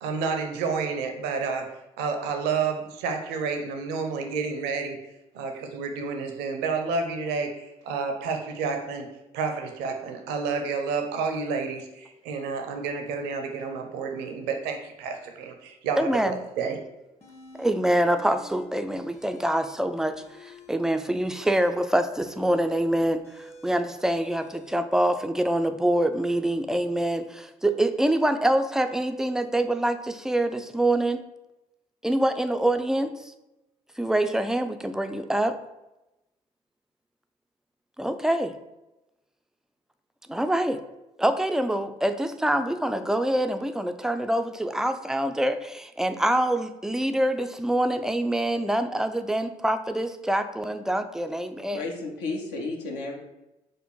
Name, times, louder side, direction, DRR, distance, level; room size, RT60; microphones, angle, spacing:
voice 1, 0.0-1.7 2.0-5.0 5.3-9.1 9.3-16.8, right 5 dB, 65° right, 5 dB, 0.6 m, -30 dB
voice 2, 16.0-16.4 17.6-31.2 32.0-33.3 34.0-35.6 38.0-38.6 40.3-40.8 41.2-51.9, right 1 dB, 5° right, 8 dB, 0.3 m, -25 dB
sound 1, 17.2-17.7 18.1-18.7 19.0-19.7 20.1-24.7, left 1 dB, 35° left, 1.3 m, -49 dB
voice 3, 51.7-53.2, left 3 dB, 65° left, 1 dB, 0.8 m, -32 dB
4.3 x 2.5 x 4.6 m, 0.96 s
figure-of-eight pair, 45°, 19 cm